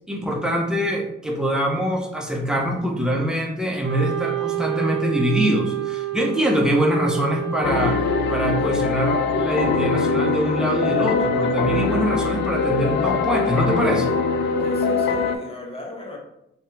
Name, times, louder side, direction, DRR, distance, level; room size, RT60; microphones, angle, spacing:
voice 1, 0.0-8.0 8.3-14.1, equal, 5° right, 0 dB, 0.8 m, -23 dB
Wind instrument woodwind instrument, 3.8-9.0, right 14 dB, 70° right, 0.6 m, -29 dB
sound 1, 7.6-15.4, left 4 dB, 65° left, 0.5 m, -22 dB
voice 2, 14.6-16.2, left 2 dB, 30° left, 1 dB, 1.0 m, -37 dB
3.1 x 2.9 x 3.4 m, 0.81 s
cardioid pair, 90°, 20 cm